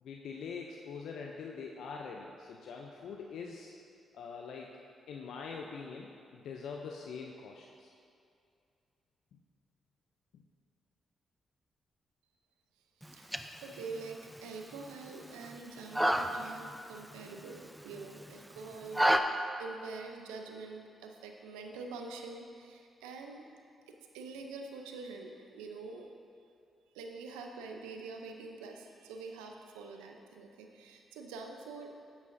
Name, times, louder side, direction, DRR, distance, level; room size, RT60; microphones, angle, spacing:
voice 1, 0.0-3.7 4.1-4.8 5.1-7.9 9.3-9.4 10.3-10.4, left 5 dB, 70° left, 0 dB, 0.5 m, -44 dB
sound 1, 13.0-19.2, equal, 5° right, 0.5 m, -34 dB
voice 2, 13.0-23.5 23.9-26.1 26.9-32.1, right 4 dB, 85° right, 3 dB, 0.6 m, -46 dB
9.6 x 8.3 x 2.6 m, 2.4 s
hypercardioid pair, 45°, 0 cm